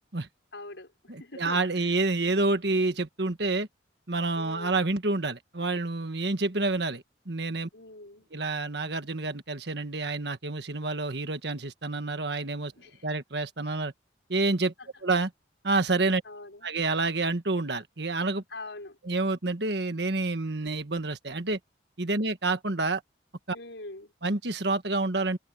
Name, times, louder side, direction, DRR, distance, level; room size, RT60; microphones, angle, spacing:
voice 1, 0.5-2.0 4.4-4.8 7.7-8.3 12.8-13.0 16.3-16.7 18.5-19.0 23.5-24.1, left 2 dB, 80° left, 5.2 m, -43 dB
voice 2, 1.1-3.7 4.1-7.7 8.3-12.7 13.0-13.9 14.3-14.7 15.0-15.3 15.6-16.2 16.6-18.4 19.0-21.6 22.0-23.0 23.5-23.6 24.2-25.4, right 3 dB, 65° right, 1.6 m, -28 dB
head